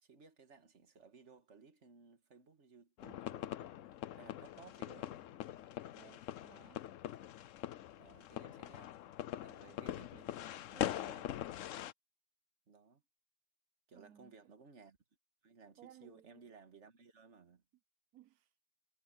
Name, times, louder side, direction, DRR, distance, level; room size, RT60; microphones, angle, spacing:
voice 1, 0.0-3.6 4.1-5.2 8.0-9.0 9.4-11.4 12.7-13.0 13.9-15.0 15.4-17.6, right 5 dB, 50° right, 2.0 m, -59 dB
sound 1, 3.0-11.9, left 12 dB, 65° left, 0.9 m, -43 dB
voice 2, 6.0-6.8 13.9-14.4 15.8-16.4 18.1-18.5, right 12 dB, 80° right, 1.4 m, -61 dB
omnidirectional pair, 1.6 m